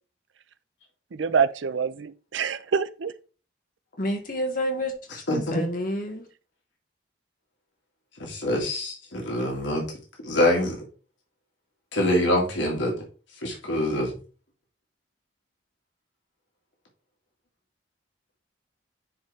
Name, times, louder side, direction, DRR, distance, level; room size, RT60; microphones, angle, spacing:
voice 1, 1.1-3.1, right 6 dB, 75° right, 0.5 m, -26 dB
voice 2, 4.0-6.3, equal, 45° left, 1.7 m, -29 dB
voice 3, 5.1-5.6 8.2-10.0 10.2-10.8 11.9-13.0 13.4-14.2, left 1 dB, 75° left, 2.2 m, -25 dB
9.4 x 4.1 x 3.5 m
head